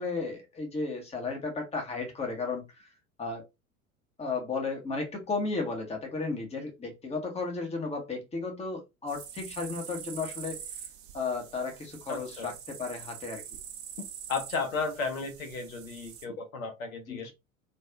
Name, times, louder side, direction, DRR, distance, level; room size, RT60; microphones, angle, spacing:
voice 1, 0.0-2.9 3.2-3.4 4.2-10.6 11.1-13.4 17.1-17.3, left 4 dB, 15° left, 1.0 m, -34 dB
sound 1, 9.1-16.3, right 8 dB, 30° right, 0.6 m, -44 dB
voice 2, 12.1-12.5 14.3-17.3, left 4 dB, 65° left, 0.9 m, -34 dB
2.6 x 2.4 x 3.3 m
figure-of-eight pair, 75°, 43 cm